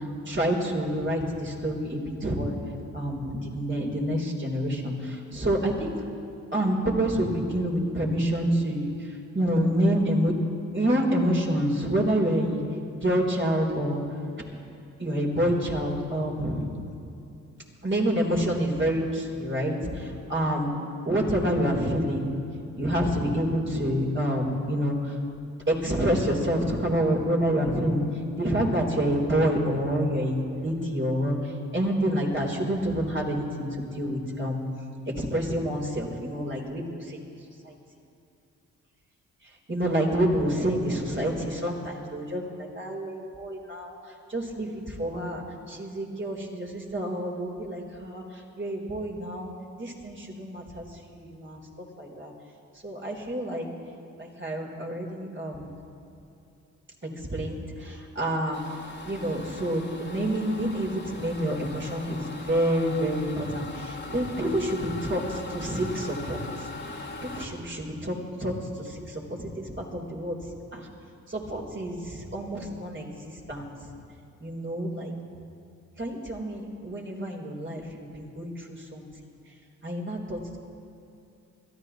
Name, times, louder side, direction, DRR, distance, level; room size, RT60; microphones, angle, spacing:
voice 1, 0.0-2.6 2.9-6.0 6.5-10.3 10.7-12.6 12.9-14.0 15.0-16.9 17.8-20.7 21.0-22.3 22.8-25.2 25.7-34.6 35.2-37.2 37.6-37.7 39.4-49.5 49.8-51.6 52.0-52.3 52.8-53.7 54.2-55.7 57.2-58.6 59.0-70.4 70.7-70.9 71.3-73.9 74.4-75.1 76.0-79.1 79.8-80.6, equal, 30° right, -2 dB, 3.6 m, -28 dB
sound 1, 58.5-67.5, left 2 dB, 25° left, 2.2 m, -40 dB
22.5 x 13.5 x 3.0 m, 2.7 s
hypercardioid pair, 45°, 38 cm